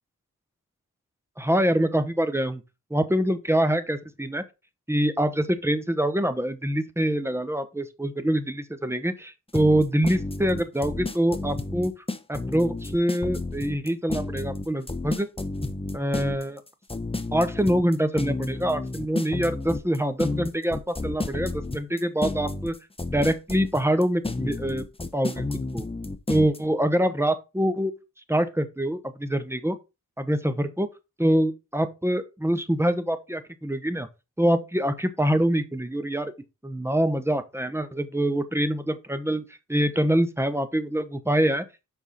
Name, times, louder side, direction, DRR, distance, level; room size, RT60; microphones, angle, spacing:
voice 1, 1.4-2.6 2.9-4.4 4.9-11.9 12.3-15.3 15.9-16.6 17.3-22.7 23.1-24.9 25.1-25.9 26.3-27.9 28.3-29.8 30.2-30.9 31.2-34.1 34.4-36.3 36.6-39.4 39.7-41.6, right 1 dB, 5° right, 1.0 m, -25 dB
sound 1, 9.5-26.6, left 2 dB, 15° left, 0.8 m, -31 dB
7.3 x 5.5 x 4.2 m
wide cardioid pair, 70°, 34 cm